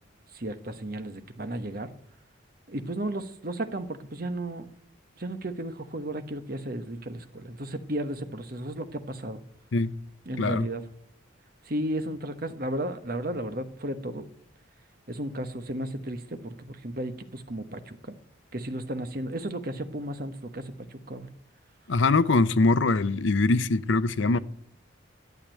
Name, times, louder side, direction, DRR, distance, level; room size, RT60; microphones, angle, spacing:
voice 1, 0.3-1.9 2.7-4.7 5.2-9.4 10.2-10.9 11.6-14.3 15.1-18.1 18.5-21.3, right 1 dB, 50° right, 1.2 m, -34 dB
voice 2, 21.9-24.4, left 3 dB, 75° left, 0.7 m, -22 dB
12.0 x 8.4 x 9.2 m
head